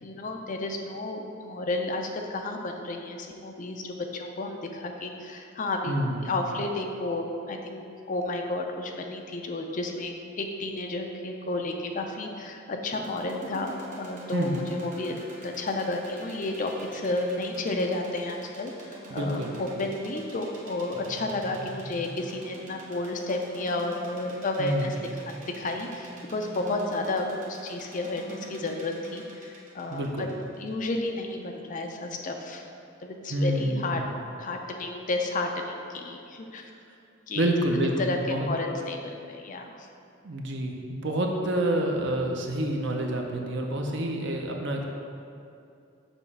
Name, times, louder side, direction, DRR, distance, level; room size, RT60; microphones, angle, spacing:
voice 1, 0.0-6.0 6.2-24.9 25.2-30.3 30.6-32.6 33.0-34.0 34.4-36.7 37.3-37.5 38.0-39.9, left 2 dB, 40° left, 3 dB, 0.5 m, -32 dB
voice 2, 5.9-6.2 14.3-14.6 19.1-19.7 24.6-25.0 29.9-30.3 33.3-34.0 37.4-38.5 40.2-44.8, right 1 dB, 60° right, 1 dB, 0.7 m, -28 dB
sound 1, 12.9-31.1, right 1 dB, 40° right, 1.0 m, -44 dB
7.1 x 3.0 x 5.5 m, 2.5 s
head